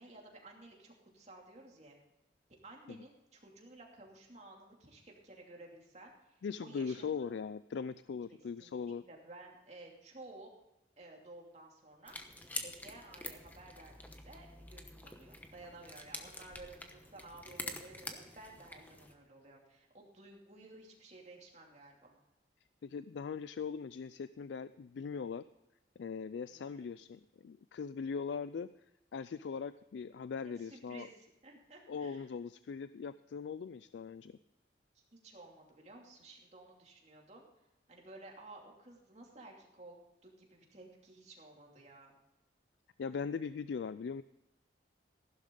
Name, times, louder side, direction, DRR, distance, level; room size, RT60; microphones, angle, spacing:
voice 1, 0.0-1.9 2.6-7.4 8.3-10.5 11.0-12.1 12.6-22.1 26.5-26.9 30.4-32.3 34.9-37.4 37.9-42.1, right 2 dB, 40° right, 0 dB, 2.7 m, -54 dB
voice 2, 6.4-9.0 22.8-25.4 26.0-28.7 29.1-31.1 31.9-34.4 43.0-44.2, left 5 dB, 75° left, 15 dB, 0.4 m, -40 dB
sound 1, 12.1-19.1, left 2 dB, 10° left, 1.0 m, -47 dB
15.0 x 11.5 x 3.8 m, 0.94 s
head